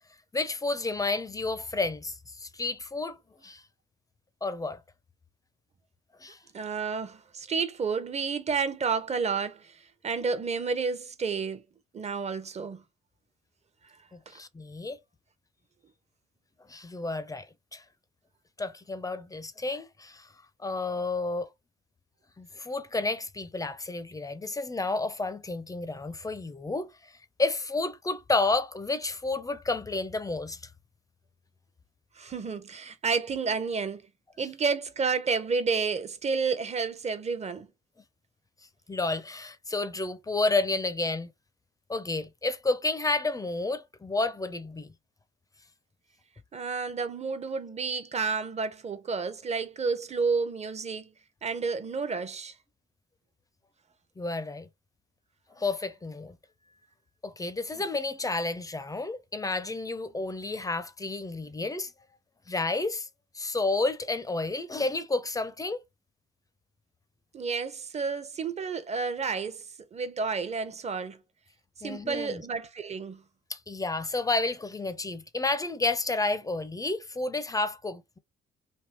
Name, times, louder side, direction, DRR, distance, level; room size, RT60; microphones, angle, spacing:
voice 1, 0.3-3.6 4.4-4.8 6.2-6.4 14.1-15.0 16.7-17.5 17.7-17.8 18.6-20.3 20.6-21.5 22.4-27.1 27.4-30.6 38.9-41.3 41.9-44.9 54.2-54.7 55.6-56.4 57.2-61.9 62.5-63.1 63.3-65.8 71.8-72.4 73.5-78.2, left 3 dB, 15° left, 0.5 m, -31 dB
voice 2, 6.5-11.6 11.9-12.8 32.2-34.0 34.4-37.7 46.5-51.1 51.4-52.5 67.3-69.6 69.9-71.2 71.8-73.2, right 5 dB, 35° right, 0.7 m, -30 dB
3.5 x 2.7 x 2.9 m
cardioid pair, 90°, 20 cm